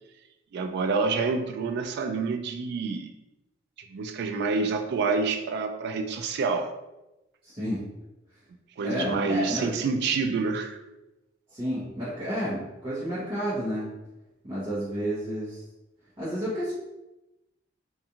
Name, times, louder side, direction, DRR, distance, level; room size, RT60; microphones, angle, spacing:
voice 1, 0.5-3.1 3.9-6.7 8.8-10.8, right 4 dB, 60° right, 7 dB, 0.3 m, -27 dB
voice 2, 7.4-7.8 8.8-9.7 11.5-13.9 14.4-15.6 16.2-16.7, equal, 30° right, -12 dB, 0.9 m, -31 dB
2.4 x 2.4 x 2.8 m, 0.97 s
head